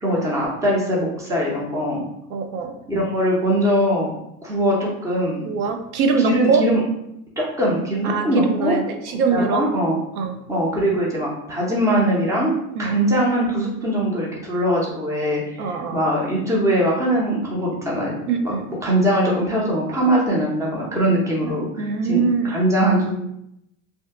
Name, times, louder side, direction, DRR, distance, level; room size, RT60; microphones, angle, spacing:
voice 1, 0.0-2.0 2.9-4.2 4.4-5.4 6.2-6.8 7.4-8.8 9.3-10.0 10.5-12.5 12.8-18.2 18.4-23.1, right 1 dB, 5° right, -3 dB, 0.6 m, -21 dB
voice 2, 2.3-2.7 5.4-6.6 8.0-9.7 10.2-10.4 12.7-12.9 15.6-16.0 18.3-18.6 21.8-22.5, right 5 dB, 85° right, 5 dB, 0.6 m, -22 dB
2.7 x 2.2 x 3.4 m, 0.81 s
supercardioid pair, 130°, 43 cm